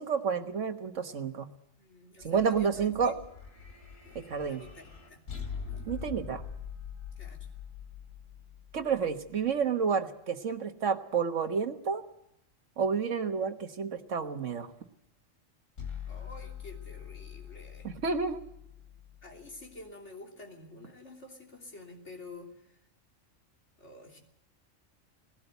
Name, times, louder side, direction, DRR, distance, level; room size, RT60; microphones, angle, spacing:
voice 1, 0.0-1.5 2.2-3.2 4.1-4.6 5.9-6.4 8.7-12.0 12.8-14.7 17.8-18.4, right 6 dB, 70° right, 7 dB, 1.6 m, -30 dB
voice 2, 1.8-3.2 4.0-5.3 5.6-5.9 7.2-7.5 16.1-17.9 19.2-22.5 23.8-24.2, left 2 dB, 65° left, 1 dB, 3.5 m, -49 dB
sound 1, 2.2-9.5 15.8-19.9, left 7 dB, 80° left, 3.1 m, -44 dB
19.0 x 17.0 x 8.1 m, 0.78 s
omnidirectional pair, 1.3 m